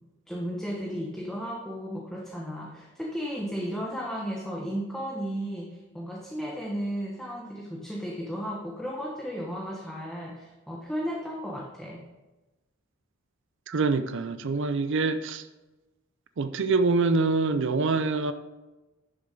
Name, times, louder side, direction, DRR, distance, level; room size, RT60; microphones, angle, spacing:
voice 1, 0.3-12.1, equal, ahead, 1.0 m, -34 dB
voice 2, 13.7-15.4 16.4-18.3, right 3 dB, 60° right, 0.5 m, -25 dB
11.0 x 6.5 x 3.8 m
head